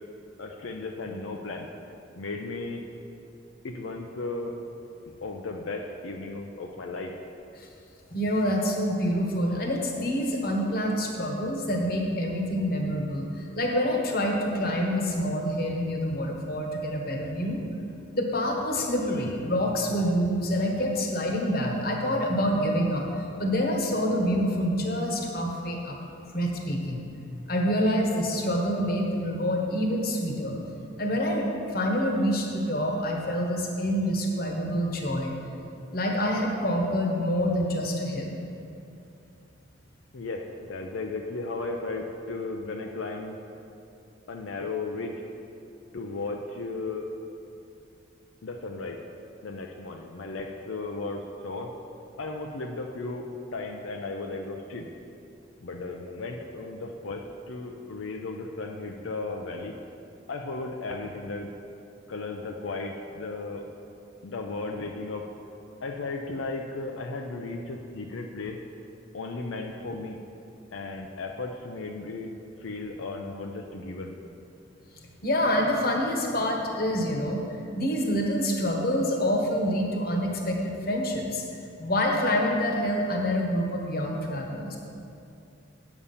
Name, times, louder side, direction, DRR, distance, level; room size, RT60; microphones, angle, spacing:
voice 1, 0.4-1.7 2.2-2.8 3.6-4.6 5.2-7.1 40.1-43.4 44.3-45.2 45.9-47.1 48.4-49.0 49.4-51.7 52.2-54.9 55.6-59.8 60.3-61.5 62.1-63.7 64.2-65.3 65.8-68.6 69.1-70.2 70.7-72.3 72.6-74.2, left 3 dB, 85° left, 2 dB, 0.6 m, -35 dB
voice 2, 8.1-17.6 18.1-26.0 26.3-27.0 27.5-30.6 31.0-35.3 35.9-38.3 75.2-77.4 77.7-81.4 81.8-84.8, equal, 50° left, 1 dB, 1.2 m, -27 dB
8.5 x 7.0 x 5.6 m, 2.7 s
head